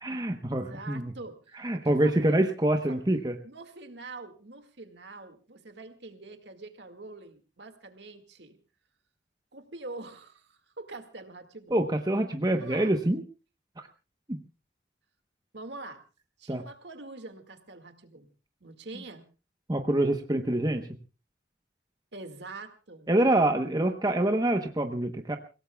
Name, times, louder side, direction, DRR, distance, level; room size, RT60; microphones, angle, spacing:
voice 1, 0.0-1.1 1.6-3.4 11.7-13.2 14.3-14.4 16.5-16.6 19.7-20.9 23.1-25.4, right 1 dB, 20° right, 5 dB, 0.9 m, -26 dB
voice 2, 0.7-2.6 2.9-3.0 3.4-8.6 9.5-11.8 12.4-12.9 15.5-16.0 16.4-18.3 18.6-19.3 22.1-23.1, right 3 dB, 65° right, 7 dB, 2.0 m, -44 dB
29.0 x 17.0 x 2.3 m, 0.32 s
head